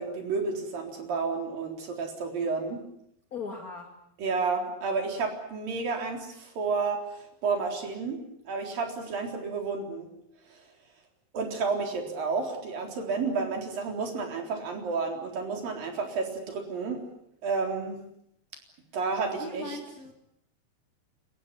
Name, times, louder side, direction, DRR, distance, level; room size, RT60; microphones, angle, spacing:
voice 1, 0.0-2.8 4.2-10.1 10.5-10.7 11.3-17.0 17.4-18.0 18.9-19.8, right 4 dB, 60° right, 3 dB, 5.5 m, -31 dB
voice 2, 3.3-3.9 19.3-20.1, left 3 dB, 30° left, 4 dB, 2.0 m, -38 dB
29.0 x 15.5 x 9.9 m, 0.77 s
omnidirectional pair, 4.5 m